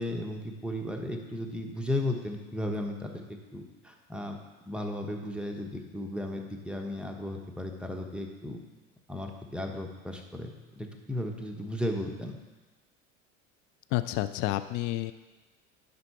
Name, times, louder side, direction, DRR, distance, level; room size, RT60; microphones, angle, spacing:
voice 1, 0.0-4.4 4.7-8.6 9.1-10.5 10.8-12.4, left 1 dB, ahead, 2 dB, 1.1 m, -35 dB
voice 2, 13.9-15.1, left 16 dB, 50° left, 12 dB, 0.5 m, -29 dB
10.5 x 4.0 x 5.8 m, 1.2 s
hypercardioid pair, 75°, 40 cm